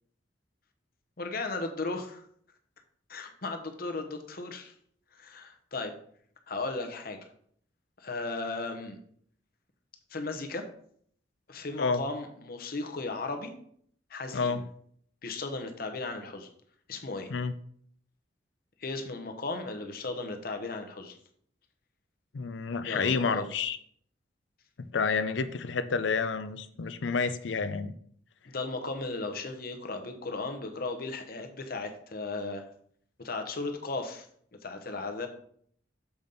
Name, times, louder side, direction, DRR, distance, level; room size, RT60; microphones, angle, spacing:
voice 1, 1.2-2.2 3.1-4.7 5.1-5.9 6.5-7.2 8.0-9.0 10.1-10.6 11.5-13.5 14.1-14.6 15.2-16.5 16.9-17.3 18.8-21.1 22.8-23.5 28.4-32.6 33.2-34.3 34.6-35.3, left 3 dB, 50° left, 6 dB, 0.9 m, -36 dB
voice 2, 22.3-23.8 24.9-27.9, left 5 dB, 75° left, 12 dB, 0.5 m, -29 dB
7.1 x 5.2 x 3.9 m, 0.63 s
head